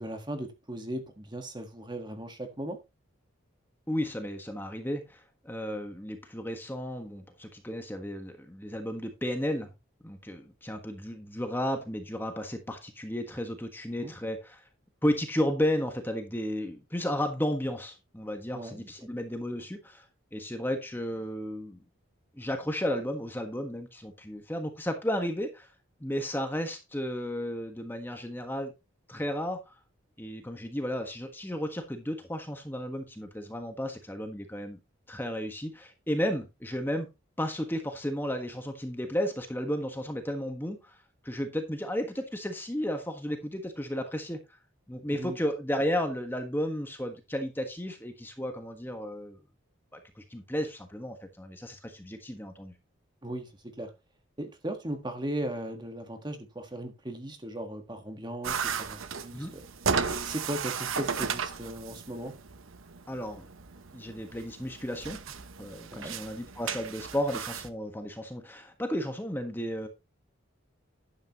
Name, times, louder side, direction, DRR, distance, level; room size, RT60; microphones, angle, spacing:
voice 1, 0.0-2.8 14.0-14.1 18.5-18.9 45.1-45.4 53.2-53.9 54.4-59.6 60.1-62.4 65.9-66.2, right 1 dB, 20° right, 1.5 m, -37 dB
voice 2, 3.9-9.7 10.0-14.6 15.0-20.0 20.3-21.8 22.4-25.7 26.0-28.7 29.1-29.8 30.2-34.8 35.1-37.1 37.4-41.0 41.2-44.4 44.9-49.4 49.9-52.7 59.3-59.5 63.1-63.4 63.9-65.2 65.6-69.9, equal, 10° left, 1.4 m, -33 dB
sound 1, 58.4-67.7, right 6 dB, 80° right, 1.0 m, -35 dB
11.5 x 8.8 x 3.0 m
head